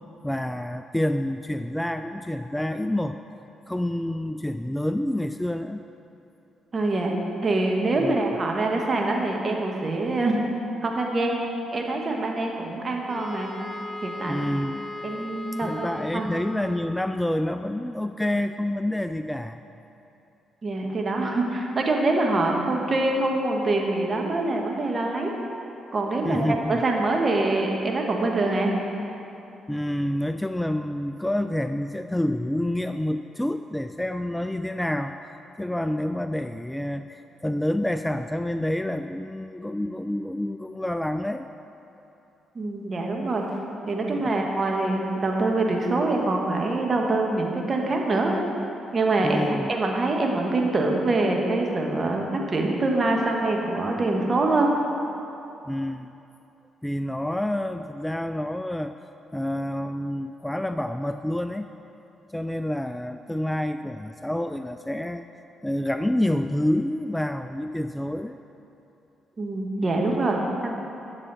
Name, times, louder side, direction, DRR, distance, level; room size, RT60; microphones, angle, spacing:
voice 1, 0.2-3.2 3.7-5.8 8.0-8.2 14.3-14.8 15.6-19.6 26.2-26.8 29.7-35.1 35.6-41.5 44.1-44.5 49.2-49.7 55.7-56.1 56.8-58.9 59.3-61.7 62.3-65.2 65.6-68.4, left 1 dB, 10° left, 9 dB, 0.3 m, -28 dB
voice 2, 6.7-7.2 7.4-10.4 10.8-11.4 11.7-13.6 14.0-14.5 15.0-16.4 20.6-25.4 25.9-28.8 42.5-43.5 43.9-48.4 48.9-49.4 49.7-54.7 69.4-70.7, right 2 dB, 40° right, 1 dB, 1.4 m, -25 dB
Wind instrument woodwind instrument, 13.1-17.1, left 2 dB, 40° left, 1.5 m, -38 dB
10.5 x 7.3 x 4.1 m, 2.8 s
hypercardioid pair, 45°, 0 cm